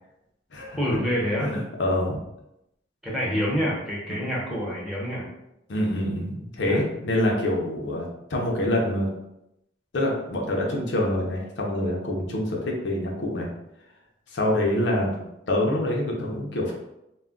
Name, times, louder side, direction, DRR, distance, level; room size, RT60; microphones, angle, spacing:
voice 1, 0.8-1.5 3.0-5.3 6.7-6.8 7.8-7.9 14.9-15.2, equal, ahead, -6 dB, 0.6 m, -27 dB
voice 2, 1.4-2.2 4.1-4.2 5.7-9.1 9.9-13.5 14.3-15.1 15.5-16.7, left 1 dB, 65° left, -1 dB, 0.5 m, -26 dB
2.2 x 2.1 x 3.6 m, 0.86 s
head